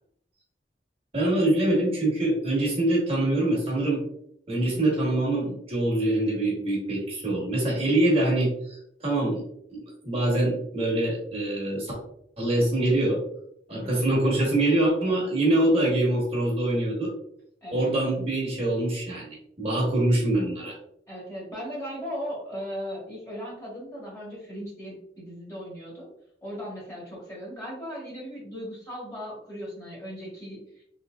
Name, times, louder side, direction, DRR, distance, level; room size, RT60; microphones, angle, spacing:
voice 1, 1.1-4.0 4.5-9.4 9.7-11.9 12.4-13.2 13.7-17.1 17.7-20.7, right 1 dB, 35° right, -4 dB, 0.9 m, -24 dB
voice 2, 4.7-5.0 13.7-14.0 17.6-17.9 21.1-26.1 26.4-30.8, equal, 15° left, -5 dB, 1.2 m, -37 dB
3.4 x 2.8 x 2.2 m, 0.72 s
head